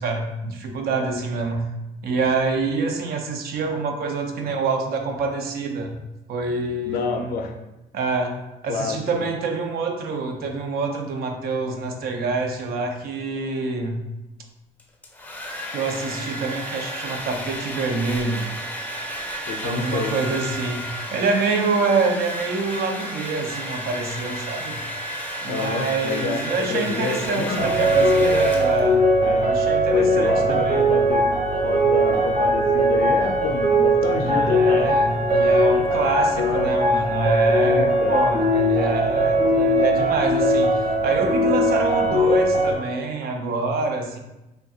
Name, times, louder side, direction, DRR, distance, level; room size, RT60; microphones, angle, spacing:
voice 1, 0.0-1.7 2.0-5.9 6.3-7.4 7.9-13.9 15.7-18.5 19.6-20.8 21.1-24.8 25.4-30.9 34.1-44.2, right 3 dB, 65° right, 4 dB, 0.5 m, -26 dB
voice 2, 6.8-7.5 8.7-9.0 19.5-20.1 25.5-27.8 29.2-29.5 29.9-35.0 36.0-36.7 37.6-38.2, left 4 dB, 60° left, 4 dB, 0.4 m, -28 dB
Domestic sounds home sounds, 14.8-29.1, equal, 10° left, 0.5 m, -32 dB
sound 1, 27.6-42.8, equal, 45° right, 1.1 m, -20 dB
3.3 x 2.4 x 2.7 m, 0.98 s
cardioid pair, 110°, 17 cm